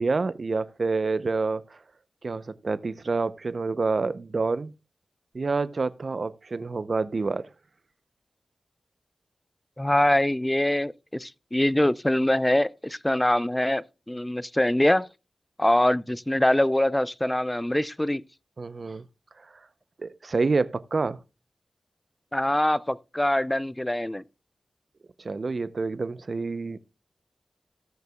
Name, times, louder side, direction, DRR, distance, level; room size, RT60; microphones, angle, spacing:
voice 1, 0.0-1.8 2.2-4.7 5.3-7.5 18.6-19.0 19.4-19.5 20.0-21.2 25.2-26.8, right 4 dB, 60° right, 0.6 m, -28 dB
voice 2, 9.8-15.1 15.6-18.2 22.3-24.2, left 1 dB, 15° left, 0.5 m, -24 dB
18.5 x 6.6 x 2.3 m
cardioid pair, 55°, 0 cm